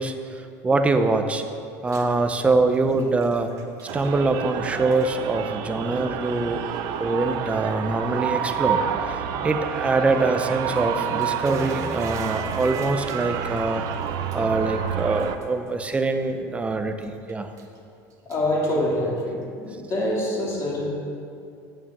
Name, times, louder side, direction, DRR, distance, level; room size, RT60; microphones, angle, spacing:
voice 1, 0.0-1.4 1.8-3.5 3.9-6.6 7.0-13.8 14.3-17.5, right 3 dB, 15° right, 7 dB, 0.8 m, -24 dB
Bathtub (filling or washing), 1.7-2.2 2.5-4.6 4.8-5.1 5.9-6.0 6.7-6.8 7.2-7.3 10.5-16.6 17.0-17.8 18.1-19.4, right 4 dB, 40° right, 1.6 m, -44 dB
sound 1, 3.9-15.4, right 8 dB, 65° right, 0.8 m, -29 dB
voice 2, 18.2-20.9, left 1 dB, 35° left, -3 dB, 3.2 m, -25 dB
8.9 x 8.8 x 7.5 m, 2.5 s
cardioid pair, 130°, 8 cm